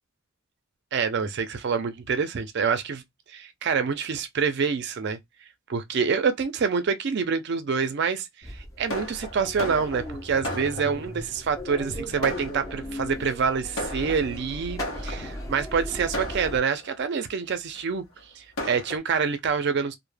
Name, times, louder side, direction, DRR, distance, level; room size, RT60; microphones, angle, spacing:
voice 1, 0.9-3.0 3.3-5.2 5.7-18.0 18.3-20.0, right 6 dB, 55° right, 0.4 m, -27 dB
sound 1, 8.4-16.6, equal, 15° left, 0.4 m, -37 dB
Fireworks, 8.9-11.2 11.8-11.9 12.2-13.1 13.8-15.5 16.1-17.0 17.7-17.8 18.2-18.3 18.6-19.0, left 1 dB, 80° left, 0.7 m, -35 dB
2.1 x 2.0 x 3.1 m
head